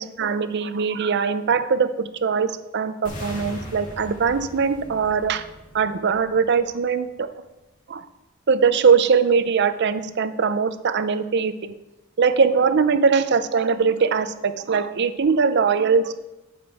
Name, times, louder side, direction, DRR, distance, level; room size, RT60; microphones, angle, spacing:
voice 1, 0.0-5.4 5.7-7.3 7.9-8.0 8.5-11.7 12.2-16.1, right 5 dB, 55° right, 12 dB, 0.5 m, -21 dB
sound 1, 3.0-7.1, equal, 40° left, 2.4 m, -39 dB
12.0 x 5.2 x 4.4 m, 0.98 s
head